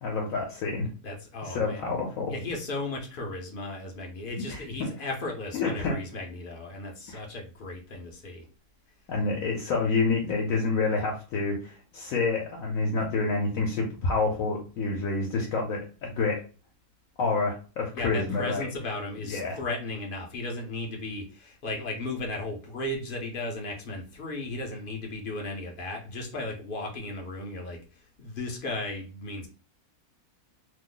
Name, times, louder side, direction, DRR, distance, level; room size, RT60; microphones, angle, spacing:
voice 1, 0.0-0.9 1.4-2.3 4.5-4.9 5.5-6.0 7.1-7.2 9.1-16.4 17.2-18.7 19.2-19.6, left 3 dB, 70° left, -1 dB, 1.1 m, -28 dB
voice 2, 1.0-1.8 2.3-8.4 17.9-27.8 28.2-29.5, left 2 dB, 50° left, 1 dB, 0.6 m, -35 dB
2.9 x 2.0 x 3.7 m, 0.36 s
omnidirectional pair, 1.6 m